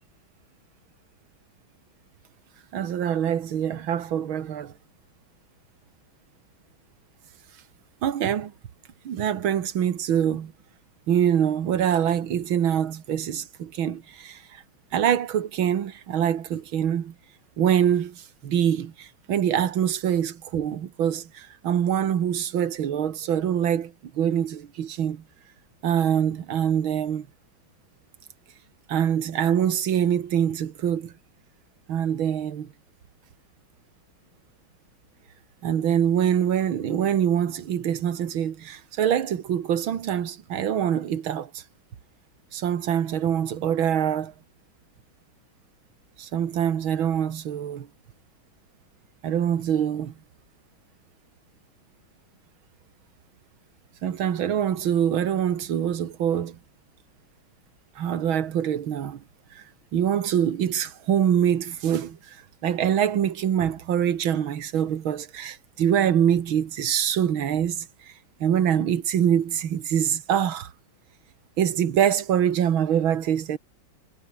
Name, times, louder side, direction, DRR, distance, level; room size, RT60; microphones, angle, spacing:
voice 1, 2.7-4.7 8.0-8.5 9.1-10.5 11.1-14.6 14.9-17.1 17.6-25.2 25.8-27.3 28.9-31.1 31.9-32.7 35.6-41.6 42.5-44.3 46.2-47.9 49.2-50.1 54.0-56.6 58.0-59.2 59.6-59.7 59.9-62.4 62.6-67.9 68.4-70.7 71.6-73.6, right 9 dB, 70° right, 2.3 m, -24 dB
omnidirectional pair, 2.3 m